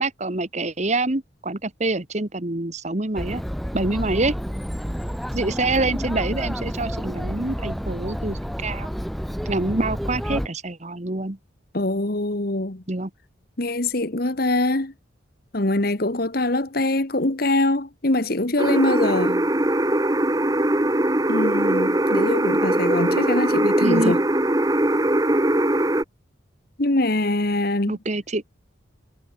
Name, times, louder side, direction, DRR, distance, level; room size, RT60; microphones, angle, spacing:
voice 1, 0.0-3.4 3.7-4.3 5.3-8.9 9.4-11.4 12.9-13.1 23.8-24.1 27.9-28.4, right 2 dB, 35° right, 1.3 m, -26 dB
Chatter, 3.2-10.5, equal, ahead, 2.7 m, -29 dB
voice 2, 11.7-12.8 13.6-14.9 15.5-19.5 21.3-24.2 26.8-28.0, left 2 dB, 50° left, 1.5 m, -23 dB
sound 1, 18.6-26.0, right 1 dB, 20° right, 1.2 m, -21 dB
head